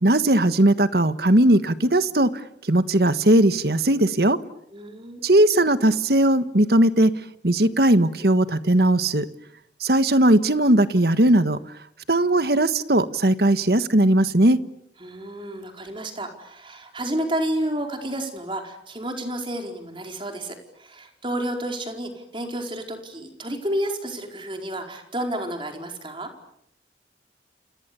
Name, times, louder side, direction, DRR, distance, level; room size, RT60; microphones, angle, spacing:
voice 1, 0.0-2.3 2.6-4.4 5.2-7.1 7.4-9.3 9.8-11.6 12.1-14.6, right 1 dB, 60° right, 12 dB, 1.5 m, -18 dB
voice 2, 4.7-5.3 15.0-26.3, right 1 dB, 30° right, 4 dB, 4.7 m, -30 dB
29.5 x 28.5 x 7.1 m, 0.74 s
head